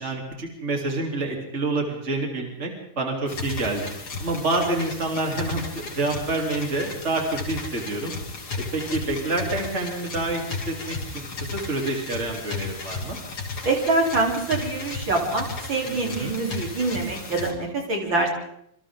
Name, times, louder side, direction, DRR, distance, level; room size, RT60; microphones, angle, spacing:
voice 1, 0.0-2.7 3.0-3.9 4.2-8.1 8.7-13.2 15.8-16.4, right 2 dB, 30° right, 1 dB, 3.6 m, -28 dB
sound 1, 3.3-17.5, left 3 dB, 75° left, 4.1 m, -34 dB
voice 2, 13.6-18.3, right 3 dB, 60° right, 0 dB, 4.4 m, -25 dB
27.5 x 25.5 x 3.8 m, 0.74 s
omnidirectional pair, 2.4 m